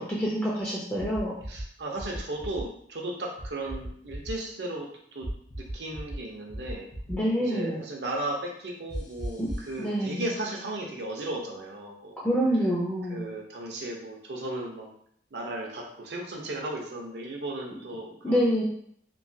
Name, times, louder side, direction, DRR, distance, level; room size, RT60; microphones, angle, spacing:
voice 1, 0.0-1.3 7.1-7.8 9.4-9.5 9.8-10.2 12.2-13.2 18.2-18.6, equal, 10° left, -6 dB, 0.4 m, -26 dB
sound 1, 1.0-1.6 2.0-2.6 3.4-4.3 5.2-6.2 6.5-7.2 8.9-9.7, right 1 dB, 65° left, 0.9 m, -36 dB
voice 2, 1.5-5.3 5.6-6.9 7.4-12.2 13.1-14.9 15.3-18.6, right 1 dB, 70° right, 0 dB, 0.6 m, -35 dB
3.0 x 2.2 x 2.6 m, 0.66 s
head